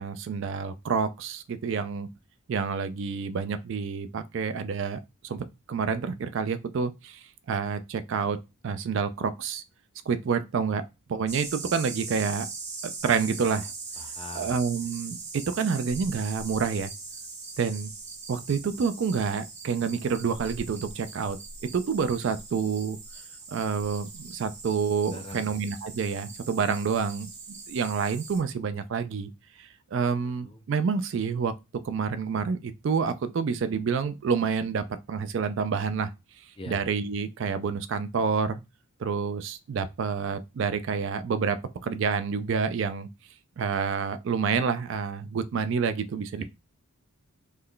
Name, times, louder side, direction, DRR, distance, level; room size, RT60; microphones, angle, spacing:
voice 1, 0.0-2.1 2.5-9.6 10.1-10.8 11.1-12.5 12.8-13.7 14.3-16.9 17.6-17.9 18.3-21.4 21.7-23.0 23.5-29.3 29.6-31.5 31.8-36.1 36.7-38.6 39.0-43.1 43.6-46.4, right 5 dB, 55° right, 0.3 m, -28 dB
sound 1, 11.3-28.4, right 4 dB, 30° right, 0.7 m, -41 dB
voice 2, 14.0-14.6 25.1-25.6 30.2-30.6 36.6-36.8 46.4-46.5, left 2 dB, 25° left, 0.5 m, -42 dB
3.2 x 2.1 x 3.7 m
head